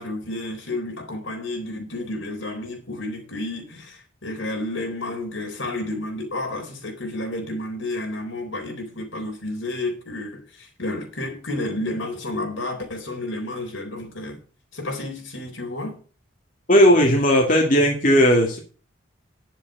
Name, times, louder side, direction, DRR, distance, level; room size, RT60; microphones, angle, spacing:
voice 1, 0.0-14.4 14.7-16.0, left 2 dB, 75° left, 4.1 m, -31 dB
voice 2, 16.7-18.6, equal, 40° left, 2.2 m, -16 dB
10.5 x 7.6 x 6.6 m
head